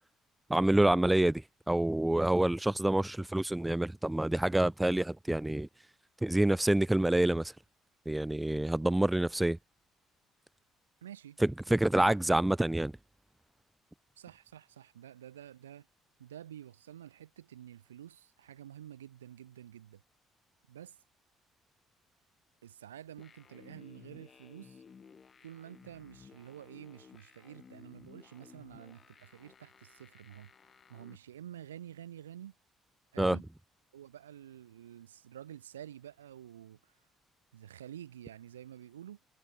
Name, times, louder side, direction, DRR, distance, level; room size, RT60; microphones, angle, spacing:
voice 1, 0.5-5.7 6.2-7.5 8.1-9.6 11.4-12.9 33.2-33.4, right 1 dB, 10° right, 0.7 m, -27 dB
voice 2, 11.0-11.4 12.0-12.2 14.2-15.9 16.2-20.0 20.7-21.0 22.6-24.8 25.4-30.5 30.9-32.5 33.1-33.5 33.9-36.9 37.5-39.2, right 10 dB, 85° right, 2.4 m, -49 dB
sound 1, 23.2-31.2, left 6 dB, 40° left, 5.6 m, -57 dB
figure-of-eight pair, 50°, 0 cm